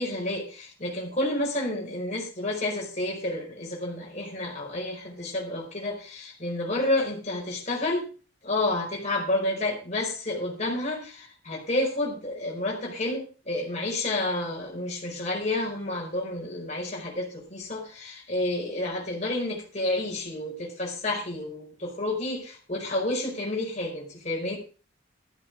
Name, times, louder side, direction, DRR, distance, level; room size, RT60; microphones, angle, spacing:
voice 1, 0.0-8.1 8.4-24.6, left 1 dB, 35° left, -1 dB, 5.0 m, -30 dB
13.5 x 10.0 x 4.8 m, 0.36 s
head